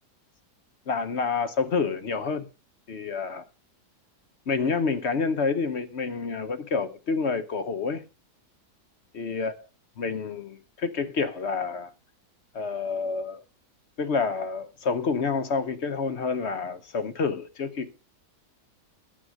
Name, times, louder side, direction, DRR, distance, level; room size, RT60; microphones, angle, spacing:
voice 1, 0.9-2.5 2.9-3.4 4.5-8.0 9.1-9.5 10.0-11.9 12.5-13.4 14.0-17.9, left 5 dB, 50° left, 0.9 m, -28 dB
9.9 x 7.8 x 6.1 m
omnidirectional pair, 1.7 m